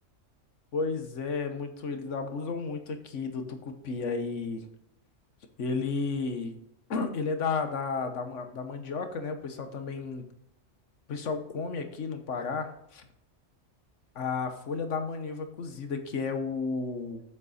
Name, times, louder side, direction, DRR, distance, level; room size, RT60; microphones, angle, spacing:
voice 1, 0.7-4.6 5.6-6.5 6.9-10.2 11.1-13.0 14.1-17.2, left 4 dB, 80° left, 7 dB, 1.4 m, -33 dB
7.6 x 7.3 x 4.1 m, 0.79 s
omnidirectional pair, 1.3 m